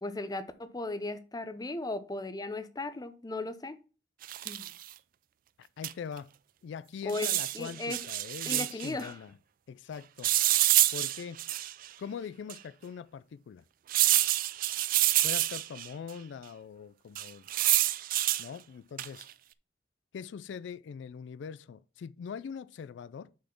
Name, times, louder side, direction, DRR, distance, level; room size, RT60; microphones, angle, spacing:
voice 1, 0.0-3.8 4.4-4.7 7.0-8.0 8.5-9.2, left 2 dB, 20° left, 0.6 m, -36 dB
sound 1, 4.2-4.8 5.8-5.9 6.2-6.3 7.1-8.9 10.2-11.9 12.5-12.6 13.9-15.9 17.1-18.5 19.0-19.3, right 15 dB, 50° right, 0.3 m, -27 dB
voice 2, 5.6-6.3 6.6-9.3 9.7-10.3 10.9-11.4 12.0-13.6 15.2-17.5 18.4-19.3 20.1-23.3, left 6 dB, 80° left, 0.3 m, -42 dB
6.3 x 4.2 x 5.8 m
head